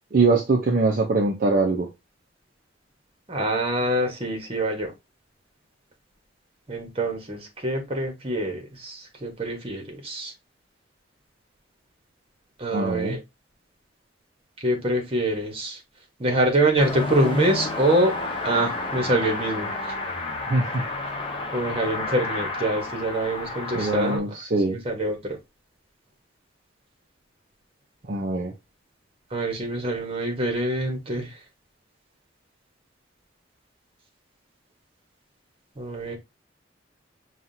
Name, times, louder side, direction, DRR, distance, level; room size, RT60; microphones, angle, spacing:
voice 1, 0.1-1.9 12.7-13.2 20.5-20.8 23.8-24.8 28.1-28.5, right 3 dB, 50° right, 0.6 m, -22 dB
voice 2, 3.3-4.9 6.7-10.3 12.6-13.2 14.6-15.8 16.2-18.1 18.4-19.9 21.5-24.4 24.7-25.4 29.3-31.4 35.8-36.2, right 1 dB, 30° right, 1.2 m, -25 dB
Car passing by / Accelerating revving vroom, 16.8-24.2, left 2 dB, 30° left, 0.8 m, -31 dB
5.7 x 2.4 x 2.7 m
head